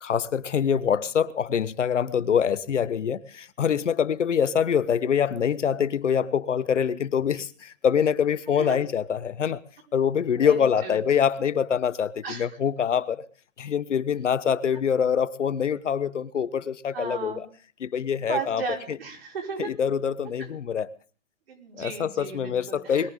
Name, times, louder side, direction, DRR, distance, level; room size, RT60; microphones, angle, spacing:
voice 1, 0.0-9.6 9.9-13.2 13.6-17.4 17.8-18.6 19.6-20.9 21.8-23.1, left 7 dB, 65° left, 1.1 m, -25 dB
voice 2, 10.4-11.0 12.2-12.5 16.9-17.4 18.3-19.7 20.4-20.5 21.5-23.1, right 5 dB, 50° right, 5.0 m, -34 dB
22.0 x 14.5 x 3.7 m
hypercardioid pair, 170°, 38 cm